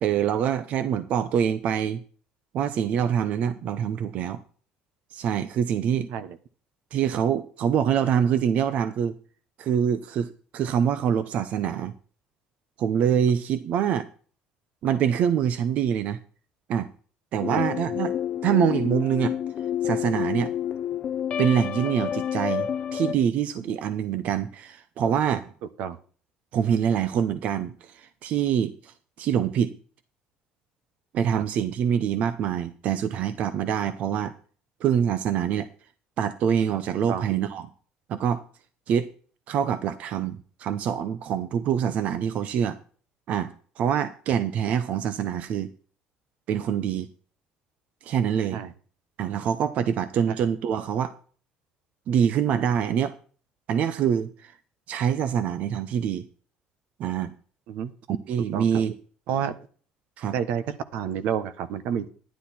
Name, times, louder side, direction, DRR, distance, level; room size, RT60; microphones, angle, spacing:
voice 1, 0.0-2.0 2.5-4.4 5.1-6.1 6.9-9.2 9.6-11.9 12.8-14.1 14.8-16.2 16.7-16.9 17.3-18.1 18.4-19.3 19.8-20.5 21.4-25.5 26.5-29.8 31.1-34.3 34.8-35.7 36.2-37.6 38.1-38.4 38.9-39.1 39.5-42.8 43.3-45.7 46.5-47.1 48.0-48.6 49.2-51.1 52.1-53.1 53.7-54.5 54.9-56.2 57.0-57.3 58.1-58.9 60.2-60.4, right 8 dB, 55° right, 13 dB, 0.7 m, -25 dB
sound 1, 17.4-23.1, left 9 dB, 40° left, 0.5 m, -29 dB
voice 2, 60.3-62.1, right 8 dB, 75° right, 13 dB, 1.1 m, -29 dB
11.5 x 10.0 x 4.3 m, 0.42 s
cardioid pair, 145°, 3 cm